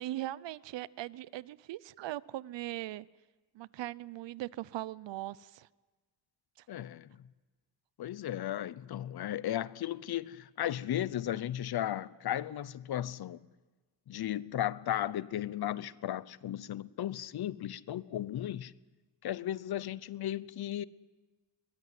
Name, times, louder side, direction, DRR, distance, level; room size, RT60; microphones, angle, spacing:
voice 1, 0.0-3.1 3.5-5.7 6.6-6.7, right 15 dB, 75° right, 0.6 m, -40 dB
voice 2, 6.7-7.1 8.0-13.5 14.1-18.7 19.2-20.9, left 12 dB, 60° left, 0.8 m, -35 dB
22.5 x 19.0 x 9.3 m
wide cardioid pair, 135°, 44 cm